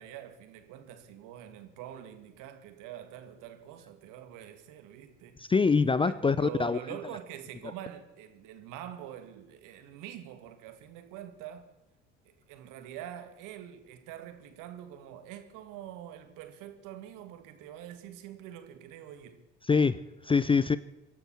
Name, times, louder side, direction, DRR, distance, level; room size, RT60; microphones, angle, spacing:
voice 1, 0.0-5.5 6.1-11.7 12.3-19.5, right 11 dB, 60° right, 2.2 m, -45 dB
voice 2, 5.4-6.8 19.7-20.8, left 5 dB, 15° left, 0.5 m, -24 dB
24.5 x 12.0 x 4.4 m
figure-of-eight pair, 60°, 35 cm